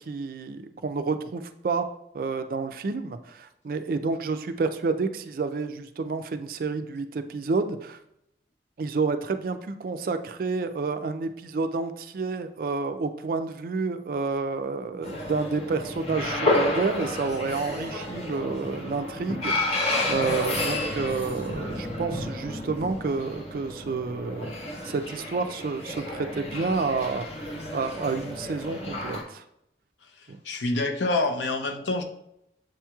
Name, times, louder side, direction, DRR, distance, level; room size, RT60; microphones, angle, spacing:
voice 1, 0.1-1.9 2.1-8.0 8.8-24.5 24.8-29.4 30.3-30.4, right 4 dB, 50° right, 9 dB, 0.3 m, -29 dB
sound 1, 15.0-29.2, left 2 dB, 35° left, 0.7 m, -31 dB
voice 2, 30.4-32.0, left 2 dB, 80° left, 6 dB, 0.6 m, -26 dB
7.6 x 2.9 x 2.3 m, 0.78 s
head